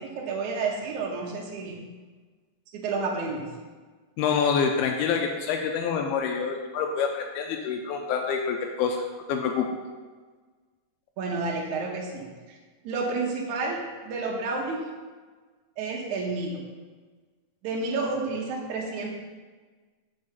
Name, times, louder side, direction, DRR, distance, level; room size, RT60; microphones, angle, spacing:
voice 1, 0.0-1.8 2.7-3.4 11.2-12.6 12.8-14.8 15.8-16.6 17.6-19.1, right 3 dB, 85° right, -2 dB, 1.7 m, -30 dB
voice 2, 4.2-9.7, left 6 dB, 90° left, 2 dB, 2.2 m, -27 dB
5.8 x 5.5 x 6.7 m, 1.4 s
omnidirectional pair, 5.2 m